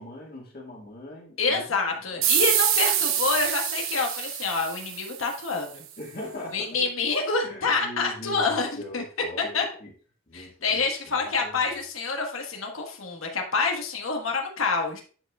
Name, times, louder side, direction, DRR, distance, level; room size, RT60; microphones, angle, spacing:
voice 1, 0.0-1.8 2.1-2.2 3.2-3.4 6.0-6.9 7.4-9.9 10.3-11.7, left 1 dB, 50° left, -2 dB, 2.0 m, -41 dB
voice 2, 1.4-5.8 6.5-9.0 9.5-9.6 10.3-15.0, left 4 dB, 85° left, 2 dB, 1.5 m, -27 dB
sound 1, 2.2-5.5, right 10 dB, 85° right, 1.0 m, -26 dB
11.0 x 4.9 x 2.4 m, 0.41 s
head